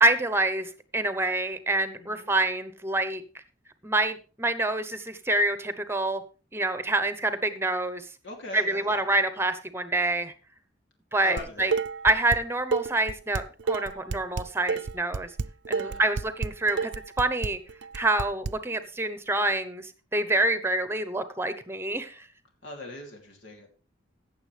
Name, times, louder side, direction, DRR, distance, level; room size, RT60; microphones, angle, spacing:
voice 1, 0.0-3.2 3.8-6.2 6.5-8.1 8.5-10.3 11.1-11.7 12.0-15.3 15.7-16.9 17.2-17.6 17.9-22.3, right 2 dB, 15° right, 11 dB, 0.9 m, -26 dB
voice 2, 1.9-2.3 8.2-9.0 11.2-11.7 15.8-16.1 22.6-23.7, left 2 dB, 75° left, 1 dB, 2.9 m, -40 dB
Dishes pots and pans, 11.4-12.4 12.7-18.5, right 5 dB, 75° right, 0.5 m, -30 dB
16.0 x 7.1 x 3.3 m, 0.34 s
head